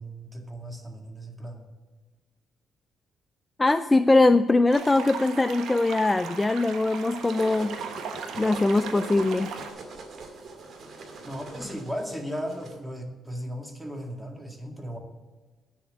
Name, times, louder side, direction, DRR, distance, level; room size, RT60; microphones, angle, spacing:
voice 1, 0.0-1.7 11.2-15.0, equal, 5° right, 2 dB, 2.0 m, -36 dB
voice 2, 3.6-7.8 8.4-9.5, left 2 dB, 15° left, 12 dB, 0.4 m, -22 dB
sound 1, 4.7-9.7, right 6 dB, 80° right, 1.3 m, -38 dB
sound 2, 6.9-12.8, right 3 dB, 60° right, 2.1 m, -42 dB
9.5 x 7.2 x 6.7 m, 1.3 s
cardioid pair, 90°, 0 cm